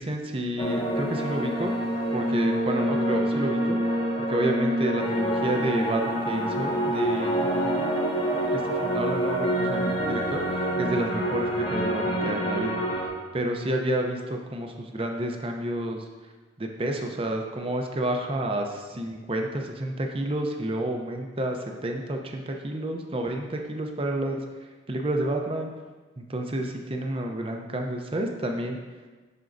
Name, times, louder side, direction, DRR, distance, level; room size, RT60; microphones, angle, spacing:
voice 1, 0.0-1.7 2.1-3.8 4.2-7.7 8.2-12.8 13.3-16.0 16.6-24.4 24.9-25.7 26.2-28.8, right 1 dB, 30° right, 3 dB, 0.6 m, -30 dB
sound 1, 0.6-13.1, equal, 30° left, 1.0 m, -26 dB
11.0 x 4.4 x 2.6 m, 1.3 s
head